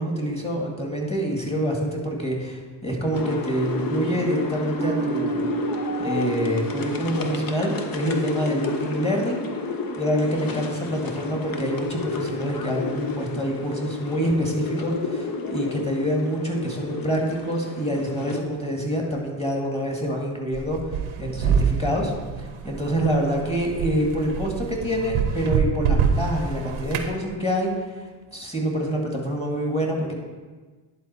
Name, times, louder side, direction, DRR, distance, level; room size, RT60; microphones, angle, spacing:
voice 1, 0.0-5.5 6.0-9.5 10.0-22.1 22.6-27.7 28.3-30.1, equal, 10° left, 0 dB, 2.0 m, -26 dB
sound 1, 3.1-18.4, left 4 dB, 45° left, 0.9 m, -31 dB
sound 2, 4.8-11.5, right 7 dB, 15° right, 0.3 m, -34 dB
sound 3, 20.5-27.1, right 6 dB, 85° right, 0.9 m, -26 dB
10.5 x 4.0 x 4.3 m, 1.4 s
supercardioid pair, 65°, 49 cm